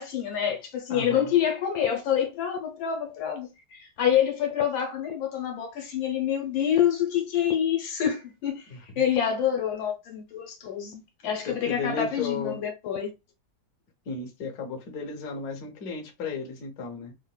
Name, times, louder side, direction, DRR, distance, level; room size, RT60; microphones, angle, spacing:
voice 1, 0.0-8.7 8.9-13.1, left 9 dB, 75° left, 1.7 m, -27 dB
voice 2, 0.9-1.3 8.7-8.8 11.5-12.6 14.0-17.1, left 4 dB, 60° left, 1.2 m, -34 dB
3.7 x 2.5 x 2.2 m
omnidirectional pair, 2.1 m